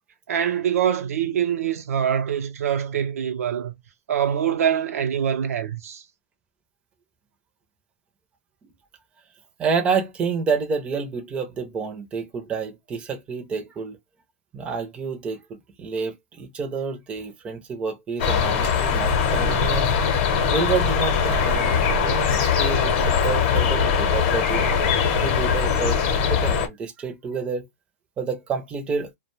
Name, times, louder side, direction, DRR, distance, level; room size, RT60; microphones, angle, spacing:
voice 1, 0.3-3.8 4.1-6.0, right 9 dB, 80° right, 0.6 m, -24 dB
voice 2, 9.6-14.0 14.5-19.9 20.4-24.8 25.2-27.7 28.2-29.1, right 5 dB, 15° right, 0.5 m, -29 dB
sound 1, 18.2-26.7, left 6 dB, 45° left, 0.8 m, -21 dB
2.3 x 2.2 x 3.0 m
hypercardioid pair, 150°, 8 cm